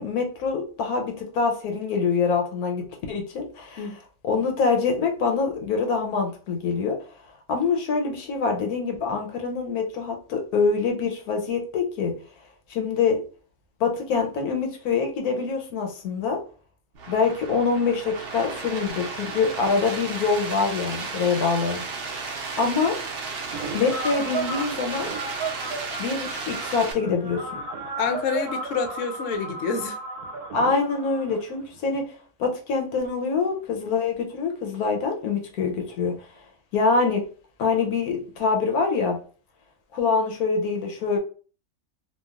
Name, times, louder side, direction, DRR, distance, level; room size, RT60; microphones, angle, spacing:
voice 1, 0.0-3.8 4.2-7.0 7.5-12.1 12.7-13.2 13.8-16.4 17.1-21.8 22.6-23.0 23.7-25.1 26.0-27.4 30.5-32.1 32.4-36.2 36.7-37.2 37.6-39.2 39.9-41.2, left 4 dB, 85° left, 1.2 m, -25 dB
sound 1, 16.9-26.9, right 4 dB, 60° right, 0.6 m, -34 dB
Prayer (Rec with Cell), 23.5-32.0, right 3 dB, 85° right, 1.2 m, -34 dB
voice 2, 28.0-30.0, left 5 dB, 70° left, 0.9 m, -27 dB
3.1 x 2.3 x 2.3 m
omnidirectional pair, 1.6 m